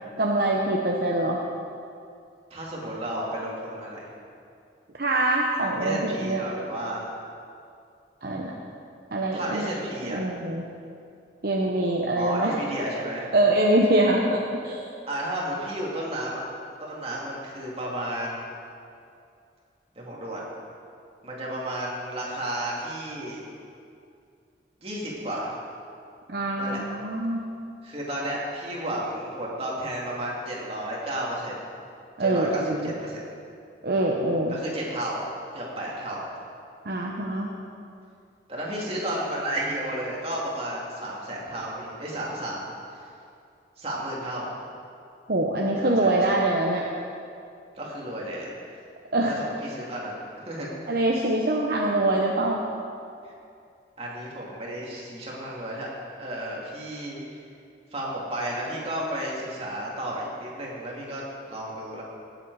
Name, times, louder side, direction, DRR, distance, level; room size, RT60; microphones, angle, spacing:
voice 1, 0.2-1.4 5.0-6.4 8.2-8.5 9.1-9.8 10.1-10.6 11.4-12.5 13.3-14.8 26.3-27.4 32.2-32.9 33.8-34.6 36.8-37.5 45.3-46.8 49.1-49.3 50.9-52.6, right 1 dB, 55° right, -2 dB, 0.9 m, -24 dB
voice 2, 2.5-4.1 5.8-7.1 9.3-10.2 12.2-13.3 15.1-16.4 16.8-18.4 20.0-20.4 21.2-23.4 24.8-25.6 26.6-26.8 27.8-31.6 32.2-33.2 34.5-35.3 35.5-36.3 38.5-43.1 43.8-44.6 45.8-46.4 47.8-48.5 49.3-50.7 53.2-53.3 54.0-55.9 56.2-57.2 57.9-62.0, right 1 dB, 35° right, -4 dB, 2.4 m, -32 dB
17.5 x 7.8 x 4.8 m, 2.5 s
head